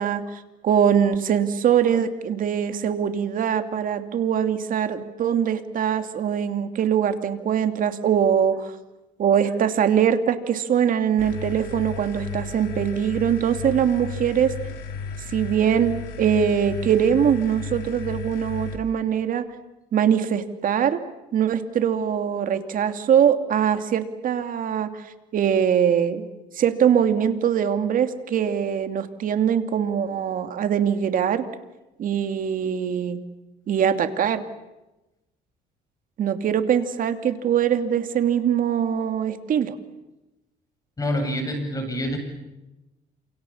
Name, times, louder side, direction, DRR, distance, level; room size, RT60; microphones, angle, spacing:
voice 1, 0.0-8.7 9.2-14.5 15.3-19.5 19.9-21.0 21.3-25.0 25.3-26.3 26.5-31.4 32.0-33.2 33.7-34.4 36.2-39.7, right 8 dB, 55° right, 8 dB, 2.7 m, -22 dB
sound 1, 11.2-18.8, left 5 dB, 85° left, 5.0 m, -34 dB
voice 2, 41.0-42.2, equal, 20° left, 5 dB, 7.9 m, -26 dB
28.5 x 28.0 x 7.3 m, 0.99 s
cardioid pair, 110°, 17 cm